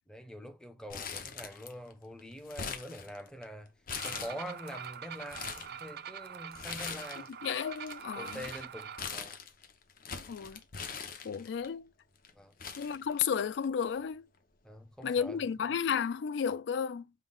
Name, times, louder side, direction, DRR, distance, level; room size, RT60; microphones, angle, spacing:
voice 1, 0.1-3.7 4.0-7.3 8.2-9.4 12.3-12.5 14.6-15.4, equal, 5° left, 0.6 m, -45 dB
Crumpling crinkling, 0.9-1.9 2.2-3.4 3.9-4.7 5.1-5.7 6.5-7.3 7.6-11.7 12.2-12.3 12.6-13.6 14.0-14.1 15.0-15.3, left 6 dB, 50° left, 0.7 m, -41 dB
sound 1, 3.9-9.0, right 8 dB, 55° right, 0.4 m, -44 dB
voice 2, 7.4-8.5 10.1-10.6 11.2-11.9 12.8-14.3 15.0-17.1, left 7 dB, 65° left, 0.3 m, -33 dB
5.5 x 2.0 x 3.8 m
head